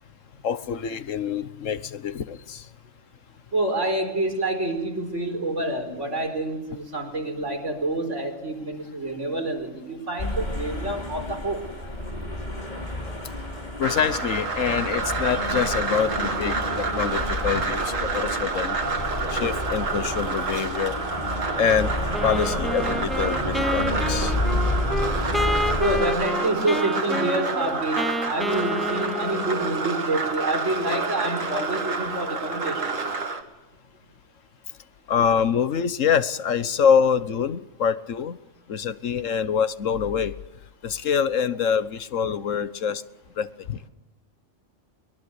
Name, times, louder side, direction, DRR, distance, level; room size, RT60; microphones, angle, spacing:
voice 1, 0.4-2.7 13.8-18.8 19.3-21.0 21.6-21.9 22.2-24.4 35.1-38.4 38.7-40.4 40.8-43.0 43.4-43.8, left 7 dB, 80° left, 1.4 m, -25 dB
voice 2, 3.5-11.6 25.8-32.9, right 2 dB, 70° right, 4.9 m, -27 dB
sound 1, 10.2-26.1, left 1 dB, 35° left, 3.9 m, -30 dB
sound 2, 13.8-33.4, right 4 dB, 85° right, 2.6 m, -29 dB
Wind instrument woodwind instrument, 22.1-29.8, left 1 dB, ahead, 0.8 m, -30 dB
23.0 x 22.0 x 8.1 m
omnidirectional pair, 1.3 m